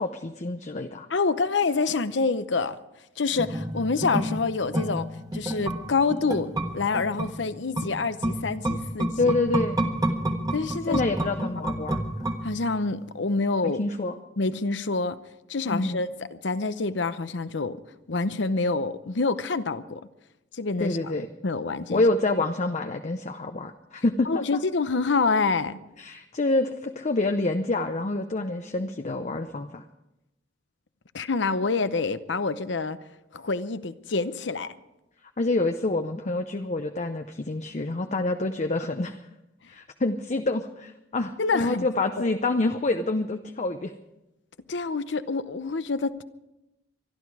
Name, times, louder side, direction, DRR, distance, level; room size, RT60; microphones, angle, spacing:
voice 1, 0.0-1.1 9.2-9.8 10.9-12.0 13.6-14.1 15.7-16.0 20.8-21.3 21.9-24.3 26.0-29.8 35.4-39.2 39.7-43.9, left 2 dB, 40° left, 0.7 m, -27 dB
voice 2, 1.1-2.8 3.2-9.1 10.5-11.0 12.4-13.8 14.4-15.2 15.5-17.8 18.1-20.0 20.5-21.1 21.4-22.0 24.3-25.8 31.1-33.0 33.3-34.8 41.4-41.9 42.2-42.3 44.7-46.2, left 4 dB, 75° left, 0.8 m, -27 dB
sound 1, 3.4-12.9 13.2-13.3, right 1 dB, 20° right, 1.5 m, -30 dB
24.0 x 11.5 x 4.8 m
head